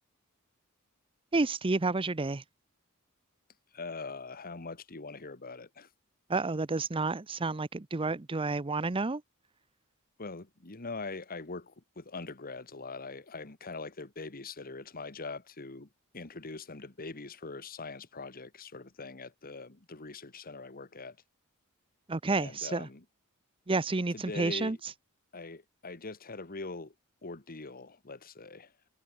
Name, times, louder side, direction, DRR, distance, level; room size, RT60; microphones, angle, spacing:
voice 1, 1.3-2.4 6.3-9.2 22.1-22.9 23.7-24.8, right 3 dB, 25° right, 0.7 m, -30 dB
voice 2, 3.7-5.9 10.2-15.9 16.1-21.2 22.3-23.0 24.1-24.8 25.3-26.9 27.2-28.7, left 3 dB, 45° left, 1.6 m, -42 dB
head